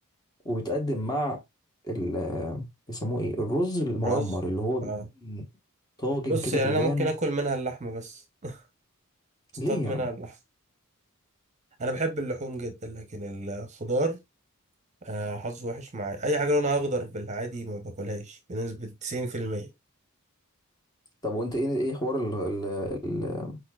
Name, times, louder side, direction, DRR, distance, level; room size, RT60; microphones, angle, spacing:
voice 1, 0.4-1.4 1.9-4.9 5.2-5.4 6.0-7.1 9.6-10.0 21.2-23.6, equal, 20° left, 1.2 m, -29 dB
voice 2, 6.3-8.6 9.7-10.3 11.8-14.2 15.0-19.7, right 1 dB, 30° right, 0.8 m, -30 dB
4.6 x 4.3 x 2.3 m
head